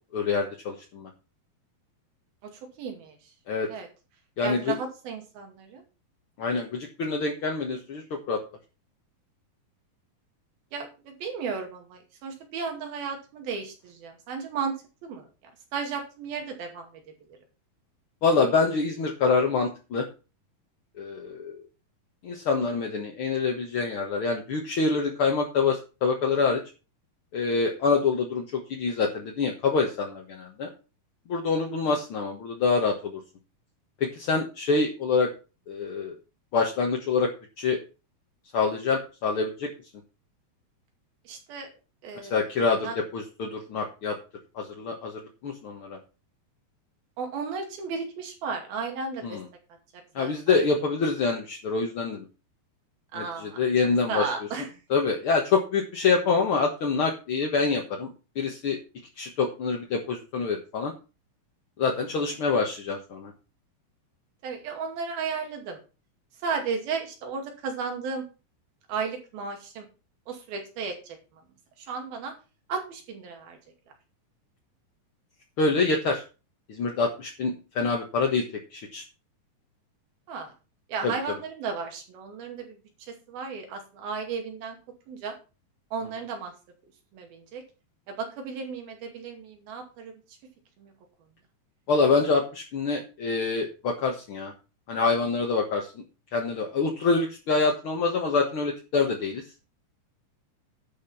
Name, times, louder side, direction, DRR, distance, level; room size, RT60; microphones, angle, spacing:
voice 1, 0.1-1.1 3.5-3.7 4.4-4.7 6.4-8.4 18.2-20.1 21.0-21.6 22.2-26.6 27.3-30.7 31.3-33.2 34.0-35.3 35.7-36.2 36.5-37.3 37.6-37.8 38.5-39.7 42.3-44.2 44.6-46.0 49.2-49.4 50.2-52.2 53.1-54.2 54.9-58.1 58.4-58.8 59.2-60.9 61.8-63.3 75.6-76.2 76.7-78.4 78.7-79.0 81.0-81.1 91.9-94.5 94.9-96.0 96.3-99.4, left 4 dB, 50° left, 0 dB, 1.7 m, -26 dB
voice 2, 2.8-3.2 3.6-3.9 4.4-5.8 10.7-14.8 15.0-15.3 15.7-16.9 41.3-41.7 42.0-42.4 42.8-43.0 47.2-49.4 50.2-50.6 53.1-53.6 54.1-54.7 64.4-65.8 66.4-68.2 68.9-69.9 70.3-71.2 71.9-72.3 72.7-73.6 80.3-80.5 80.9-82.8 83.1-84.8 85.1-85.4 85.9-86.5 87.1-87.6 88.1-90.1 90.8-90.9, right 5 dB, 85° right, 3 dB, 4.3 m, -34 dB
11.5 x 6.0 x 5.7 m, 0.32 s
omnidirectional pair, 4.1 m